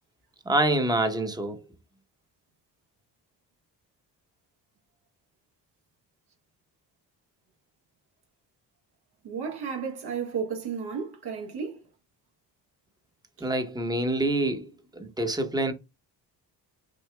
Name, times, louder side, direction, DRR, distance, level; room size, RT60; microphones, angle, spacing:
voice 1, 0.5-1.6 13.4-15.7, right 1 dB, 10° right, 0.9 m, -26 dB
voice 2, 9.2-11.8, right 6 dB, 70° right, 1.5 m, -33 dB
6.1 x 2.7 x 2.2 m
cardioid pair, 85°, 41 cm